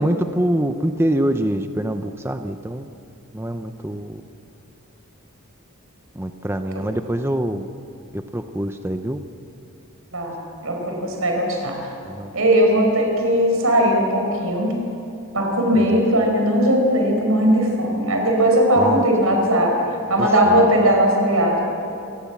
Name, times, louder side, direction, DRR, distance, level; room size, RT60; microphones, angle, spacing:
voice 1, 0.0-2.9 3.3-4.2 6.2-7.7 8.1-9.2 12.0-12.3 15.7-16.0 18.8-19.1 20.4-20.7, right 1 dB, 10° right, 7 dB, 0.7 m, -24 dB
voice 2, 10.6-11.7 12.3-14.8 15.3-19.7 20.1-21.6, equal, 80° right, 1 dB, 5.4 m, -18 dB
28.0 x 19.0 x 7.4 m, 2.8 s
head